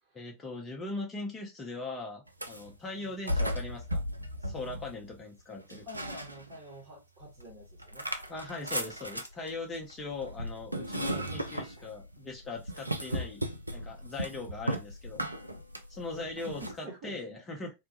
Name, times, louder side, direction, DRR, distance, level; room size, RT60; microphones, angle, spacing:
voice 1, 0.1-4.0 4.4-5.9 8.3-13.4 13.7-15.3 15.9-17.7, left 3 dB, 20° left, 0.6 m, -40 dB
sound 1, 2.3-2.7 3.3-5.2 5.7-6.8 7.2-16.8, equal, 85° right, 0.3 m, -36 dB
voice 2, 5.8-8.1 11.8-11.9 13.8-13.9 16.1-17.4, right 1 dB, 35° right, 1.0 m, -48 dB
2.2 x 2.1 x 2.8 m
figure-of-eight pair, 90°, 0 cm